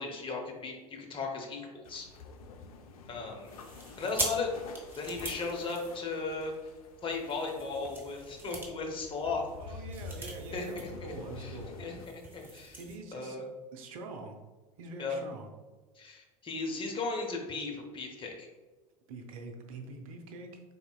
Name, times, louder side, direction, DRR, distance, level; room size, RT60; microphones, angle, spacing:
voice 1, 0.0-2.1 3.1-3.5 4.0-4.5 5.0-6.5 7.0-9.4 9.7-9.8 10.5-12.8 13.1-13.4 15.0-15.2 16.0-18.5, left 4 dB, 25° left, 1 dB, 0.8 m, -36 dB
sound 1, 1.8-12.1, left 4 dB, 65° left, 0.5 m, -48 dB
sound 2, 3.4-6.5 7.0-11.0 11.2-11.4 11.7-13.0, right 2 dB, 10° right, 0.8 m, -42 dB
voice 2, 9.6-11.8 12.8-13.4 13.7-14.4 14.8-15.5 19.1-20.6, right 3 dB, 60° right, 3 dB, 0.6 m, -44 dB
4.0 x 3.5 x 2.2 m, 1.2 s
figure-of-eight pair, 75°, 20 cm